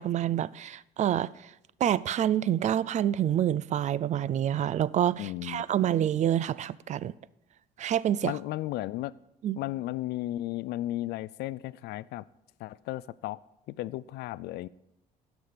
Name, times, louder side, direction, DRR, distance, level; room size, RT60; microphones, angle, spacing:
voice 1, 0.0-1.5 1.8-7.1 7.8-8.3 9.4-9.6, right 11 dB, 45° right, 0.4 m, -27 dB
voice 2, 5.2-5.6 8.2-9.1 9.6-12.2 12.6-13.4 13.7-14.7, left 15 dB, 75° left, 0.4 m, -34 dB
16.5 x 6.1 x 5.1 m
cardioid pair, 110°, 17 cm